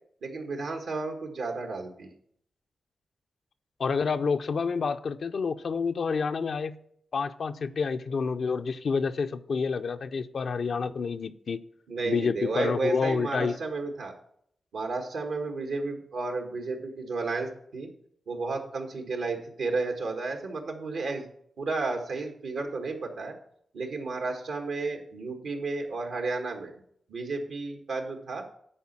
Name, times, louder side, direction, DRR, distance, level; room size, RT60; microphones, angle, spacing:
voice 1, 0.2-2.1 11.9-14.1 14.7-17.9 18.3-21.3 21.6-23.4 23.7-26.7 27.1-28.5, right 3 dB, 85° right, 3 dB, 1.6 m, -32 dB
voice 2, 3.8-6.8 7.1-11.6 12.0-13.6, left 5 dB, 70° left, 8 dB, 0.5 m, -28 dB
9.9 x 4.4 x 7.3 m, 0.67 s
cardioid pair, 60°, 0 cm